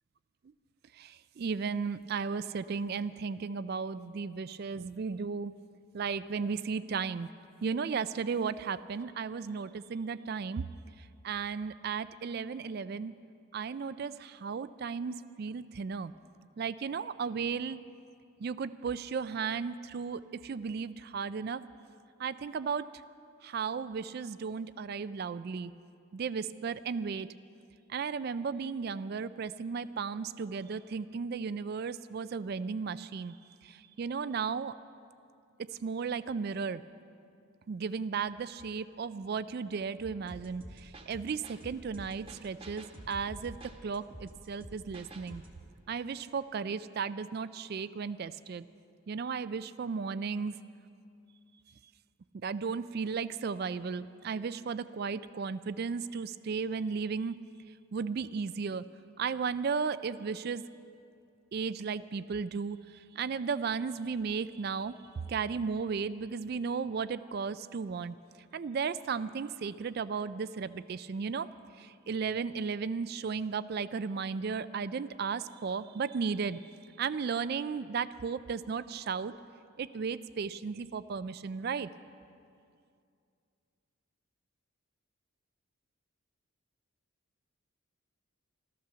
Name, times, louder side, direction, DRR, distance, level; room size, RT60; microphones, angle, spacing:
voice 1, 1.0-5.5 5.9-7.3 7.6-10.6 11.2-13.1 13.5-16.1 16.6-17.8 18.4-21.6 22.2-22.9 23.4-25.7 26.1-27.3 27.9-33.3 33.6-34.7 35.8-36.8 37.7-45.4 45.9-48.6 49.1-50.6 52.3-57.4 57.9-58.8 59.2-60.6 61.5-62.8 63.2-65.0 65.3-68.1 68.5-71.5 71.8-76.7 77.0-79.3 79.8-81.9, right 5 dB, 45° right, 14 dB, 0.3 m, -35 dB
sound 1, 40.3-45.6, right 1 dB, 25° right, 1.1 m, -49 dB
13.5 x 13.5 x 6.8 m, 2.4 s
head